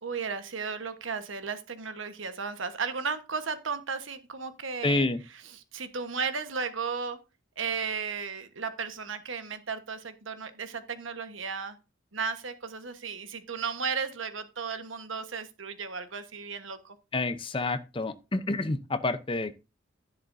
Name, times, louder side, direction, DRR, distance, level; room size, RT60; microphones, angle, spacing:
voice 1, 0.0-7.2 7.6-11.8 12.1-17.0, right 5 dB, 75° right, 1.2 m, -35 dB
voice 2, 4.8-5.2 17.1-19.6, left 2 dB, 25° left, 0.6 m, -28 dB
11.0 x 10.5 x 2.6 m
head